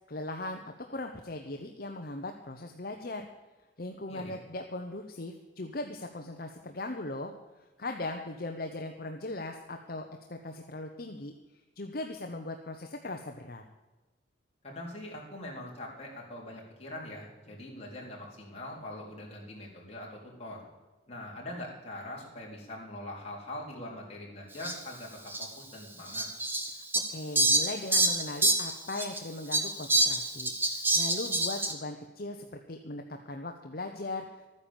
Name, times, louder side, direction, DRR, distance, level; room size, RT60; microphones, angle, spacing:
voice 1, 0.1-0.6 0.9-3.3 3.8-7.3 7.8-11.3 11.8-13.6 26.7-26.8 27.1-34.5, left 2 dB, 50° left, 4 dB, 1.0 m, -39 dB
voice 2, 14.6-20.7 21.1-26.3, left 1 dB, 35° left, -3 dB, 4.0 m, -43 dB
Fowl, 24.6-24.7 25.3-25.4 26.1-29.2 29.5-31.7, right 2 dB, 10° right, 1.3 m, -27 dB
13.5 x 9.7 x 7.2 m, 1.2 s
head